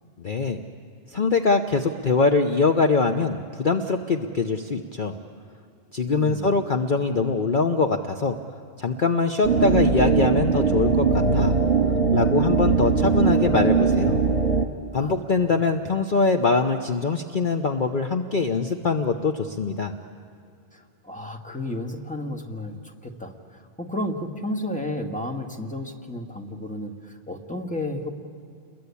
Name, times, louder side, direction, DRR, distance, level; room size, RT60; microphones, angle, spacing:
voice 1, 0.2-0.6 1.1-5.2 5.9-8.4 8.8-11.6 12.1-14.2 14.9-19.9, left 4 dB, 45° left, 5 dB, 1.0 m, -23 dB
voice 2, 6.0-6.5 14.9-15.2 15.5-15.6 20.7-28.1, left 1 dB, 5° left, 2 dB, 1.9 m, -32 dB
sound 1, 9.4-14.7, right 5 dB, 50° right, 1.8 m, -20 dB
29.5 x 22.0 x 8.5 m, 2.5 s
omnidirectional pair, 1.3 m